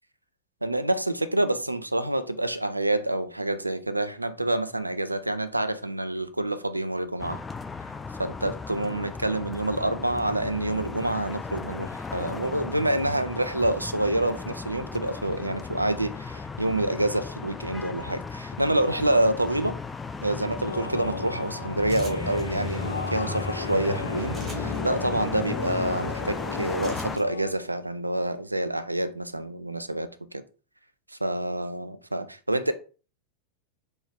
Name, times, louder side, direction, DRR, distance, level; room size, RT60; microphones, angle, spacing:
voice 1, 0.6-7.4 8.2-19.8 20.2-30.4 31.2-32.7, right 1 dB, 85° right, 0.4 m, -27 dB
sound 1, 7.2-27.2, left 4 dB, 15° left, 0.4 m, -35 dB
sound 2, 20.7-27.5, left 2 dB, 80° left, 0.6 m, -35 dB
sound 3, 21.9-22.4 24.3-24.8 26.8-27.2, right 1 dB, 20° right, 1.7 m, -43 dB
4.3 x 2.7 x 3.3 m
figure-of-eight pair, 90°, 0 cm